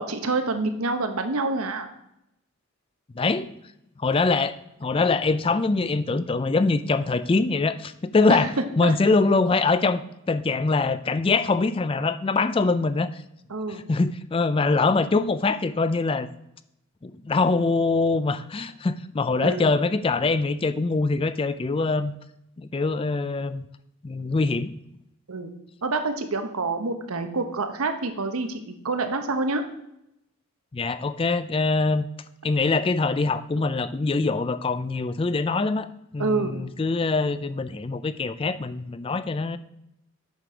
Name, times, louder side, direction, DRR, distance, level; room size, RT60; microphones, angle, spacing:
voice 1, 0.0-1.9 8.3-8.4 8.8-8.9 13.5-13.8 19.4-19.7 25.3-25.5 25.8-29.6 36.2-36.5, right 3 dB, 85° right, 7 dB, 1.0 m, -27 dB
voice 2, 3.2-3.5 4.0-8.5 8.8-10.0 10.3-13.1 13.7-16.3 17.0-22.1 22.6-23.6 24.0-24.7 30.7-32.1 32.4-35.9 36.1-39.6, left 3 dB, 25° left, 13 dB, 0.3 m, -23 dB
8.0 x 6.0 x 4.9 m, 0.80 s
head